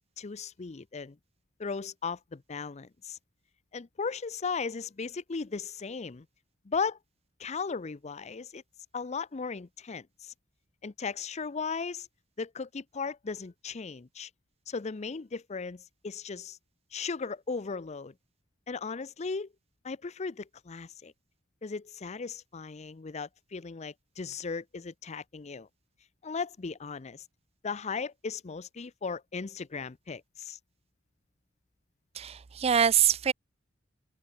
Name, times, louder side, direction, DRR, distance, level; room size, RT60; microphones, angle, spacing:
voice 1, 0.2-1.2 1.6-3.2 3.7-6.3 6.6-7.0 7.4-8.6 8.9-10.3 10.8-12.1 12.4-14.3 14.7-16.6 16.9-18.1 18.7-19.5 19.8-21.1 21.6-25.7 26.2-27.2 27.6-30.6, left 5 dB, 35° left, 0.6 m, -36 dB
voice 2, 32.1-33.3, right 8 dB, 30° right, 0.4 m, -24 dB
open air
head